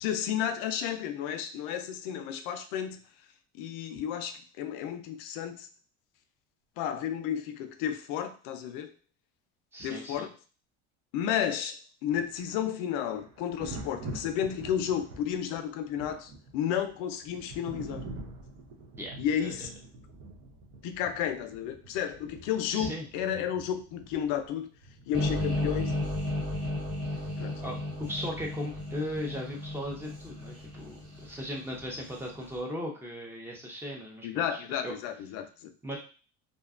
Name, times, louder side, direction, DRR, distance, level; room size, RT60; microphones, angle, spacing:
voice 1, 0.0-3.0 3.5-5.7 6.8-8.9 9.8-10.3 11.1-11.8 12.0-18.1 19.2-19.7 20.8-24.7 25.1-26.1 27.4-27.6 34.2-35.7, left 9 dB, 75° left, 0.5 m, -32 dB
voice 2, 9.7-10.3 19.0-19.5 22.7-23.1 27.6-34.9 35.8-36.0, equal, 5° right, 0.6 m, -38 dB
Thunder, 12.1-25.8 27.4-27.6, right 3 dB, 75° right, 0.7 m, -46 dB
sound 1, 25.1-32.3, left 1 dB, 35° right, 1.0 m, -34 dB
2.6 x 2.2 x 2.4 m
cardioid pair, 140°, 32 cm